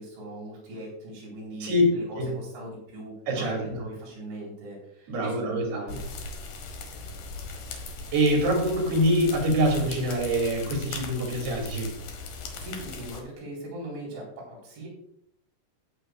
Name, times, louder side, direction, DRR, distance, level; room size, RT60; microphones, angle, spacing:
voice 1, 0.0-6.0 12.6-14.9, right 1 dB, 80° right, -3 dB, 6.4 m, -40 dB
voice 2, 3.3-3.8 5.1-5.8 8.1-11.9, right 1 dB, 60° right, 0 dB, 4.3 m, -25 dB
sound 1, 5.9-13.2, left 3 dB, 65° left, 2.2 m, -39 dB
16.5 x 8.5 x 2.3 m, 0.72 s
omnidirectional pair, 5.3 m